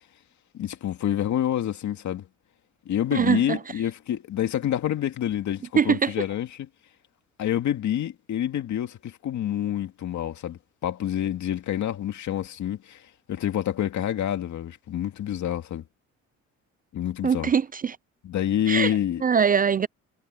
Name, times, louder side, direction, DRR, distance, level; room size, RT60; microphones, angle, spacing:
voice 1, 0.5-2.3 2.9-6.7 7.4-13.0 13.3-15.8 16.9-17.5 18.2-19.2, left 11 dB, 70° left, 2.3 m, -27 dB
voice 2, 3.1-3.6 5.8-6.1 17.2-18.0 18.7-18.9 19.2-19.9, right 7 dB, 30° right, 0.4 m, -22 dB
cardioid pair, 90°, 30 cm